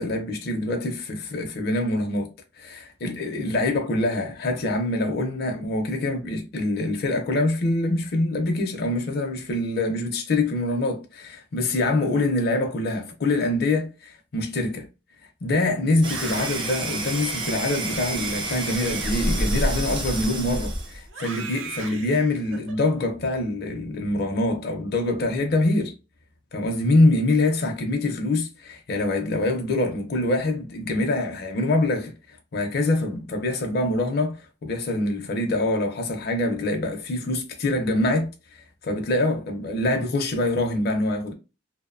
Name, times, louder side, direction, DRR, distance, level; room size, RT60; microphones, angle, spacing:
voice 1, 0.0-2.3 2.6-13.9 14.3-14.9 15.4-25.9 26.5-41.3, left 2 dB, 55° left, 0.5 m, -25 dB
Screaming, 15.9-20.5 21.1-22.8, right 5 dB, 80° right, 0.6 m, -37 dB
sound 1, 16.0-21.1, right 1 dB, 25° right, 0.5 m, -29 dB
2.5 x 2.0 x 2.4 m
head